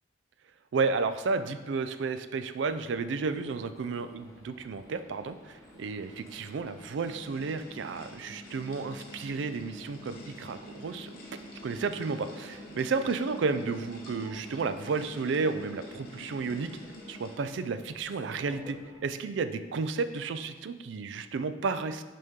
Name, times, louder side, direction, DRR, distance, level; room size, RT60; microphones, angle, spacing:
voice 1, 0.7-11.1 11.6-16.7 17.1-22.0, right 4 dB, 65° right, 11 dB, 0.3 m, -32 dB
sound 1, 2.6-19.0, equal, 15° left, 1.0 m, -54 dB
sound 2, 5.6-17.8, left 1 dB, 50° left, 1.0 m, -48 dB
6.3 x 4.3 x 3.6 m, 1.2 s
head